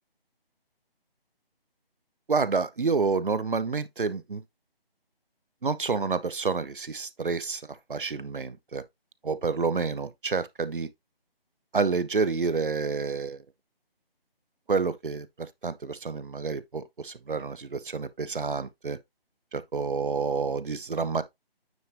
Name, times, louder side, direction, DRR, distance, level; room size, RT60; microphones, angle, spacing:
voice 1, 2.3-4.4 5.6-7.6 7.9-8.8 9.2-10.9 11.7-13.4 14.7-19.0 19.5-21.2, right 4 dB, 60° right, 0.8 m, -29 dB
9.4 x 4.2 x 3.2 m
figure-of-eight pair, 175°, 30 cm